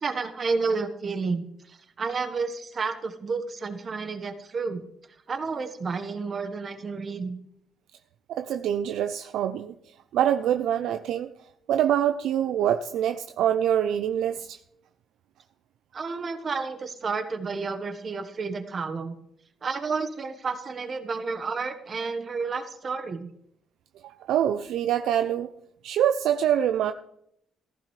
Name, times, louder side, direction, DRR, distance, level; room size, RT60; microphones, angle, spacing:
voice 1, 0.0-4.8 5.3-7.4 15.9-19.1 19.6-23.3, right 4 dB, 45° right, 8 dB, 1.3 m, -31 dB
voice 2, 8.3-9.7 10.1-11.3 11.7-14.6 24.0-25.5 25.8-26.9, right 10 dB, 80° right, 9 dB, 0.5 m, -25 dB
15.0 x 14.5 x 3.3 m, 0.73 s
cardioid pair, 90°, 0 cm